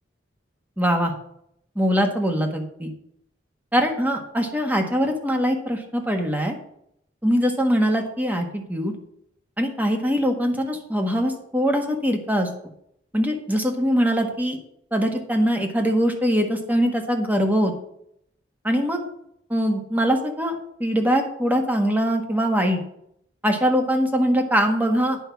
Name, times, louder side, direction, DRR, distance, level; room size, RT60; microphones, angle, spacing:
voice 1, 0.8-1.1 1.7-2.9 3.7-6.5 7.2-8.9 9.6-12.5 13.1-14.6 14.9-17.7 18.6-19.0 19.5-20.5 20.8-22.8 23.4-25.2, equal, 10° right, 3 dB, 1.4 m, -22 dB
9.7 x 5.6 x 7.1 m, 0.73 s
head